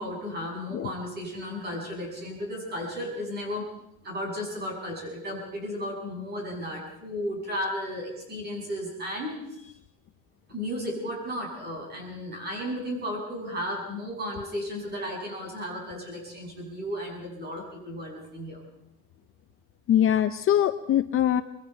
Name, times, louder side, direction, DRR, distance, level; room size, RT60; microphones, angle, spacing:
voice 1, 0.0-3.7 4.0-9.6 10.5-18.6, equal, 30° right, 0 dB, 7.5 m, -34 dB
voice 2, 19.9-21.4, left 11 dB, 40° left, 10 dB, 0.7 m, -22 dB
26.5 x 21.5 x 4.6 m, 0.79 s
cardioid pair, 170°, 35 cm